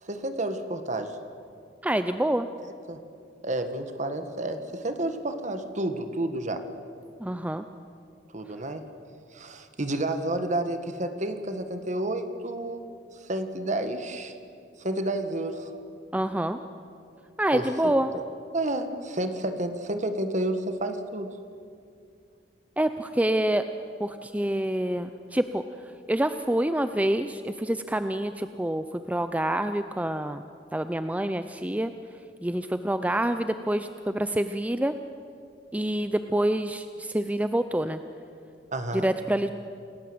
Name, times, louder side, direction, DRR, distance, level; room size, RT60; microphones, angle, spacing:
voice 1, 0.0-1.2 2.9-3.0 3.4-6.6 8.3-8.8 9.3-12.8 13.2-14.3 14.8-15.8 17.5-18.2 18.5-21.3 38.7-39.1, right 1 dB, 40° right, 8 dB, 1.7 m, -30 dB
voice 2, 1.8-2.5 7.2-7.7 16.1-16.6 17.4-18.1 22.8-23.6 24.0-25.6 26.1-30.4 30.7-31.9 32.4-34.9 35.7-38.0 38.9-39.5, right 1 dB, 10° right, 10 dB, 0.5 m, -27 dB
28.0 x 17.5 x 7.9 m, 2.4 s
head